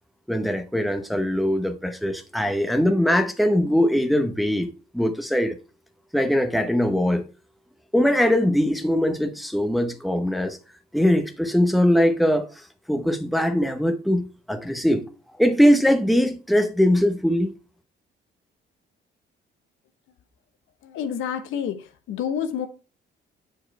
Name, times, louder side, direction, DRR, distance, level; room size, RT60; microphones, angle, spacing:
voice 1, 0.3-4.7 4.9-5.6 6.1-7.3 7.9-10.6 10.9-12.5 12.9-15.1 15.4-17.6, equal, ahead, 0.9 m, -21 dB
voice 2, 20.8-22.7, left 8 dB, 85° left, 1.0 m, -29 dB
7.3 x 4.5 x 4.5 m
cardioid pair, 90°, 20 cm